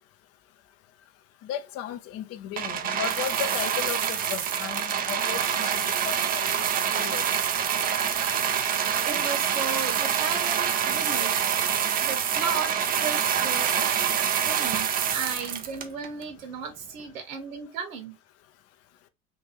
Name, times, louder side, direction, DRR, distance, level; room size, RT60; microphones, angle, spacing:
voice 1, 1.4-6.7 6.9-7.2, left 10 dB, 35° left, 0.5 m, -35 dB
sound 1, 2.6-16.2 17.0-17.1, right 8 dB, 20° right, 0.4 m, -26 dB
voice 2, 8.6-12.7 13.0-18.2, right 6 dB, 70° right, 1.4 m, -35 dB
3.7 x 2.5 x 2.8 m
figure-of-eight pair, 80°, 42 cm